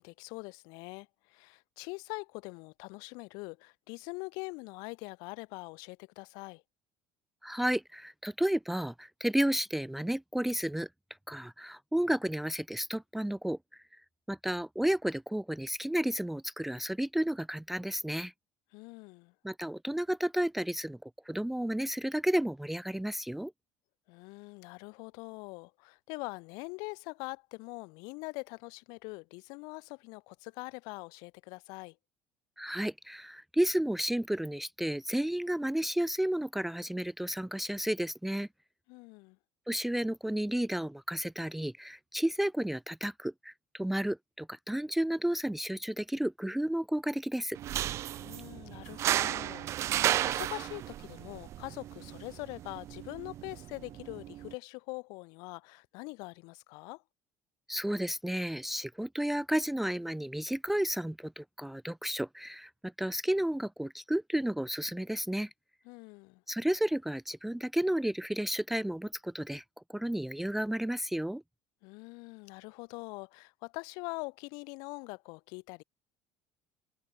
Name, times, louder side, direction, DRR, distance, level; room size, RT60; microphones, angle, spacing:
voice 1, 0.0-6.6 18.7-19.3 24.1-32.0 38.9-39.4 48.2-57.0 65.8-66.4 71.8-75.8, left 30 dB, 75° left, 4.6 m, -43 dB
voice 2, 7.4-10.9 11.3-14.0 14.3-18.3 19.4-23.5 32.6-38.5 39.7-47.6 57.7-65.5 66.5-69.6 69.9-71.4, right 1 dB, 5° right, 0.4 m, -32 dB
sound 1, 47.6-54.5, right 13 dB, 45° right, 2.1 m, -34 dB
cardioid pair, 155°, 7 cm